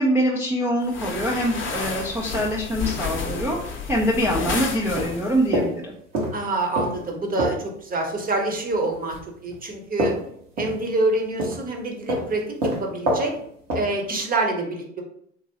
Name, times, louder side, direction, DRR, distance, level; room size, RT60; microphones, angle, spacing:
voice 1, 0.0-5.9, equal, 5° right, -4 dB, 0.3 m, -24 dB
sound 1, 0.8-5.5, left 4 dB, 30° left, 0.7 m, -31 dB
sound 2, 0.8-1.1 1.7-1.8 2.1-3.1 3.4-3.7 4.0-4.7 5.0-7.8 8.6-11.1 11.4-11.8 12.1-14.1, equal, 85° right, 1.1 m, -28 dB
voice 2, 6.3-9.2 9.4-10.1 10.6-13.3 13.7-15.0, right 2 dB, 25° right, 2 dB, 0.7 m, -26 dB
2.9 x 2.8 x 2.7 m, 0.68 s
hypercardioid pair, 80°, 37 cm